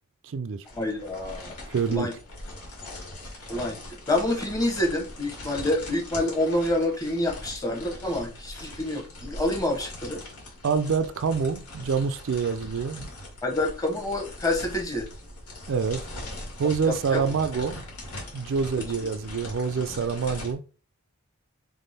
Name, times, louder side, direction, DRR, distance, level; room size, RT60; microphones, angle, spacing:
voice 1, 0.2-0.6 1.7-2.1 10.6-13.1 15.7-16.0 16.6-17.8 18.3-20.6, right 5 dB, 60° right, 0.4 m, -26 dB
sound 1, 0.7-20.5, left 1 dB, 90° left, 2.0 m, -41 dB
voice 2, 0.7-1.5 1.9-2.1 3.5-10.2 13.4-15.1 16.9-17.2, left 1 dB, 15° left, 1.0 m, -27 dB
3.6 x 3.5 x 4.1 m
head